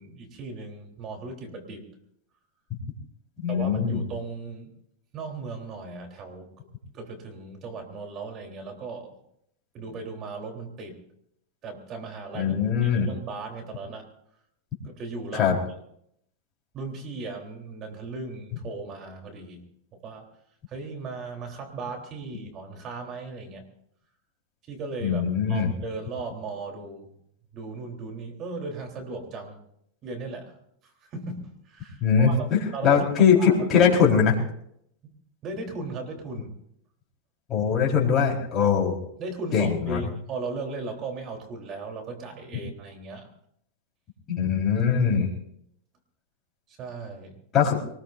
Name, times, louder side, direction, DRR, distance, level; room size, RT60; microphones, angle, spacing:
voice 1, 0.0-1.9 3.5-4.7 5.1-6.5 6.9-9.2 9.7-11.0 11.6-14.1 14.8-15.5 16.7-19.6 19.9-20.3 20.7-23.7 24.7-27.1 27.5-29.6 30.0-30.6 30.8-33.8 35.4-36.5 39.2-43.3 44.8-45.2 46.7-47.4, right 3 dB, 35° right, 3 dB, 3.7 m, -37 dB
voice 2, 3.4-4.0 12.3-13.1 15.3-15.6 25.0-25.7 32.0-34.4 37.5-39.0 39.5-40.0 44.3-45.3 47.5-47.8, left 7 dB, 30° left, -2 dB, 4.5 m, -21 dB
23.5 x 20.0 x 2.7 m, 0.72 s
supercardioid pair, 135°, 0 cm